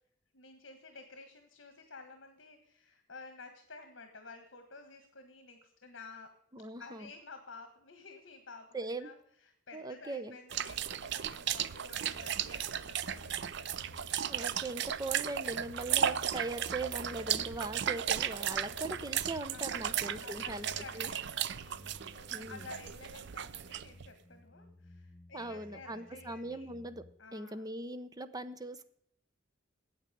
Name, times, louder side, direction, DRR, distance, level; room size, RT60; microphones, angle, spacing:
voice 1, 0.3-6.3 6.8-8.7 9.0-13.7 16.6-17.5 19.5-21.8 22.1-26.7 27.2-27.7, left 3 dB, 65° left, 6 dB, 1.6 m, -52 dB
voice 2, 6.5-7.1 8.7-9.1 9.7-10.4 14.3-20.7 20.9-21.1 22.3-22.6 25.3-27.0 27.3-28.9, right 2 dB, 20° right, 11 dB, 0.8 m, -40 dB
sound 1, 10.5-24.1, right 9 dB, 60° right, 0.5 m, -35 dB
sound 2, 12.1-27.2, left 2 dB, 15° left, 0.5 m, -55 dB
9.1 x 8.3 x 9.2 m, 0.69 s
head